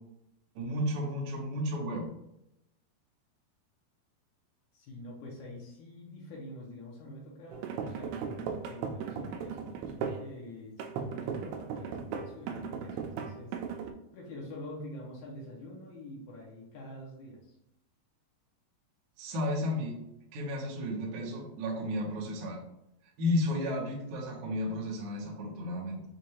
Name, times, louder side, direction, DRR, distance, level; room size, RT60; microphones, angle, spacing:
voice 1, 0.6-2.1 19.2-20.0 20.3-22.6 23.2-26.1, left 1 dB, 65° right, -3 dB, 2.1 m, -33 dB
voice 2, 4.7-13.6 14.1-17.6, left 1 dB, 70° left, -3 dB, 2.0 m, -46 dB
sound 1, 7.5-10.3 10.8-13.9, right 6 dB, 85° right, 2.4 m, -37 dB
6.4 x 2.5 x 2.8 m, 0.82 s
omnidirectional pair, 4.3 m